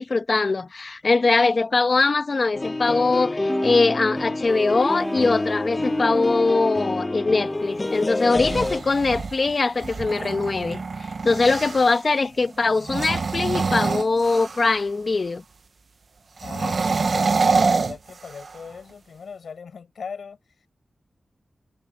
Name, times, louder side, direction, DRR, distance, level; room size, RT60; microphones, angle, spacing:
voice 1, 0.0-15.4, left 3 dB, 50° left, 1.2 m, -22 dB
sound 1, 2.5-8.8, left 2 dB, 25° left, 0.9 m, -28 dB
sound 2, 3.5-8.2, right 1 dB, 15° right, 0.4 m, -33 dB
sound 3, 8.3-12.0 12.8-14.8 16.4-18.7, right 4 dB, 60° right, 0.8 m, -26 dB
voice 2, 16.4-20.4, left 6 dB, 90° left, 5.7 m, -39 dB
wide cardioid pair, 90°, 0 cm